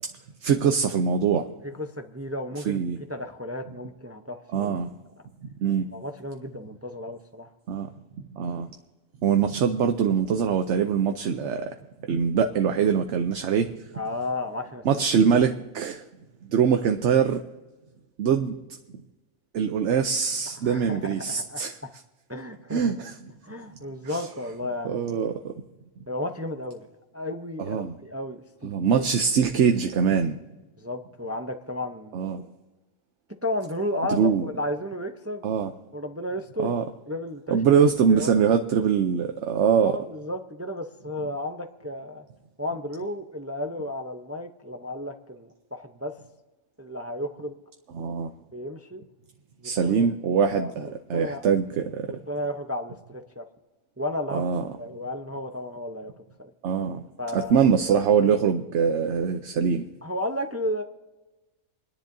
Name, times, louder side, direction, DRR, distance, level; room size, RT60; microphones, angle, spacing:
voice 1, 0.4-1.5 2.7-3.0 4.5-4.9 5.6-5.9 7.7-7.9 8.3-8.7 9.2-11.7 12.1-13.7 14.9-16.0 16.4-17.4 18.2-18.5 19.5-21.8 22.7-23.1 24.1-24.2 24.8-25.5 27.7-27.9 28.6-30.4 32.1-32.4 34.1-34.4 35.4-35.7 36.6-36.8 37.5-40.0 47.9-48.3 49.6-52.1 54.3-54.6 56.6-57.0 57.3-59.8, right 7 dB, 60° right, 6 dB, 0.9 m, -23 dB
voice 2, 1.6-2.8 3.1-4.7 5.9-7.5 13.9-15.3 20.6-21.9 22.3-22.9 23.4-25.3 26.1-26.9 27.1-29.1 30.8-32.2 33.4-35.5 35.9-36.7 37.1-37.6 38.1-38.4 39.8-42.2 42.6-46.1 46.8-47.6 48.5-49.0 49.6-50.1 50.5-51.5 52.1-53.4 54.0-54.5 54.8-56.1 56.4-56.5 57.2-58.0 60.0-60.8, left 1 dB, 15° right, 6 dB, 0.5 m, -33 dB
29.0 x 10.0 x 2.7 m, 1.2 s
omnidirectional pair, 1.4 m